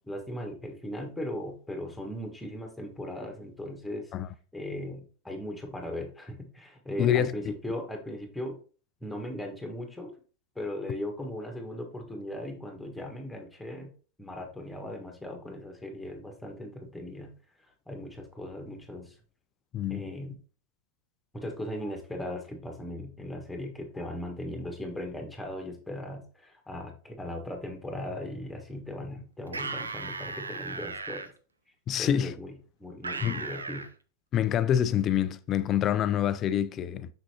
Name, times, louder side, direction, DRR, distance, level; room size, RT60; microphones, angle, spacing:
voice 1, 0.0-4.1 4.5-8.6 9.0-10.1 10.5-13.9 14.2-17.3 17.9-19.1 19.9-20.4 21.3-31.3 32.0-33.9, left 1 dB, 5° left, 1.5 m, -38 dB
voice 2, 7.0-7.5 19.7-20.1 31.9-32.3 33.2-33.5 34.3-37.1, left 10 dB, 30° left, 0.4 m, -26 dB
sound 1, 29.5-31.3 33.0-33.9, right 4 dB, 75° right, 0.6 m, -36 dB
6.2 x 6.0 x 2.9 m
figure-of-eight pair, 90°, 0 cm